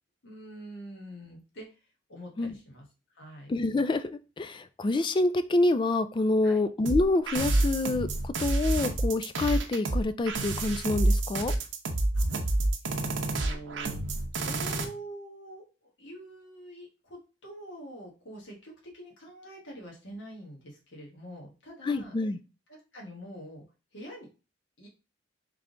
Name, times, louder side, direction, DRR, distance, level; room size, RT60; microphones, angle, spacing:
voice 1, 0.2-1.7 2.1-2.8 3.1-3.5 6.4-6.6 12.1-12.6 12.8-14.0 14.3-22.1 22.7-23.6 23.9-24.3 24.8-24.9, right 1 dB, 85° left, -2 dB, 1.3 m, -45 dB
voice 2, 3.5-11.5 21.8-22.4, left 2 dB, 25° left, 12 dB, 0.3 m, -27 dB
sound 1, 6.9-14.8, right 2 dB, 80° right, 0.7 m, -28 dB
3.6 x 3.3 x 3.7 m, 0.32 s
head